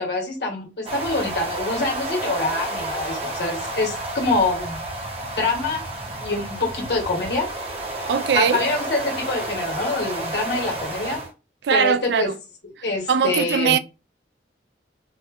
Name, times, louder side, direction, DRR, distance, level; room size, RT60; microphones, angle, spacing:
voice 1, 0.0-4.8 5.4-5.8 6.2-7.5 8.3-11.3 11.7-12.3 12.8-13.8, left 2 dB, 70° left, 1.2 m, -25 dB
sound 1, 0.8-11.3, right 1 dB, 35° right, 0.7 m, -30 dB
voice 2, 8.1-8.6 11.6-12.4 13.1-13.8, right 6 dB, 70° right, 0.3 m, -20 dB
4.2 x 2.2 x 2.3 m
head